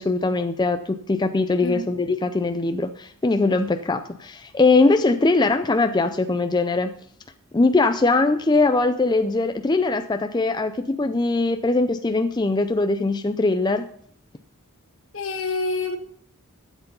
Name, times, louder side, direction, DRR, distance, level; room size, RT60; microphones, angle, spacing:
voice 1, 0.0-6.9 7.5-13.9, left 3 dB, 20° left, 0.4 m, -21 dB
voice 2, 15.1-16.0, left 3 dB, 60° left, 1.4 m, -27 dB
12.5 x 8.2 x 5.3 m
head